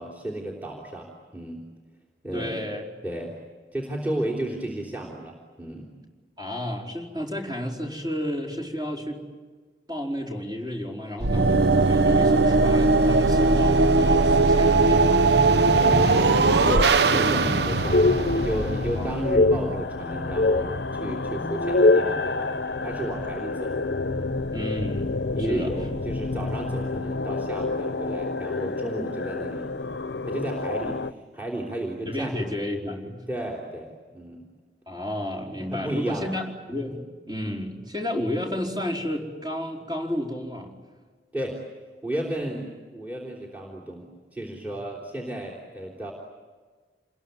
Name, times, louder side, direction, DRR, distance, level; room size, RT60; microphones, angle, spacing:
voice 1, 0.0-1.6 2.2-2.7 3.0-3.4 3.7-5.9 15.7-18.0 18.3-23.8 24.0-24.3 25.4-29.7 30.3-31.0 31.3-32.4 33.3-34.4 35.7-36.4 36.9-37.0 41.3-41.6 42.0-46.1, right 1 dB, 10° right, -1 dB, 3.5 m, -33 dB
voice 2, 2.3-2.9 6.4-9.3 9.9-15.3 19.0-19.3 24.5-25.1 25.5-25.7 32.1-33.3 34.9-36.4 36.7-40.8, left 1 dB, 25° right, 0 dB, 4.6 m, -31 dB
sound 1, 11.2-19.3, right 3 dB, 75° right, 0.8 m, -19 dB
sound 2, 15.7-31.1, left 3 dB, 80° left, 0.8 m, -30 dB
sound 3, 17.3-17.6 17.9-18.8 19.2-19.6 20.1-20.6 21.4-22.1, left 2 dB, 50° left, 0.8 m, -21 dB
28.5 x 21.5 x 9.4 m, 1.4 s
head